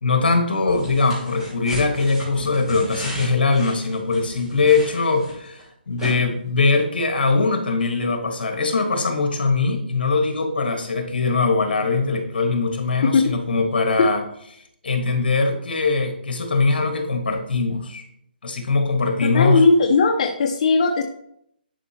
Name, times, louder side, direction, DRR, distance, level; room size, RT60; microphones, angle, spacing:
voice 1, 0.0-14.2 14.8-18.0 18.4-19.6, left 3 dB, 70° left, 5 dB, 1.5 m, -21 dB
sound 1, 0.7-5.6 6.0-6.1, equal, 5° right, 2.7 m, -34 dB
voice 2, 13.0-13.3 14.0-14.1 19.2-21.0, left 4 dB, 40° left, 3 dB, 0.6 m, -18 dB
11.0 x 4.8 x 2.9 m, 0.73 s
hypercardioid pair, 165°, 5 cm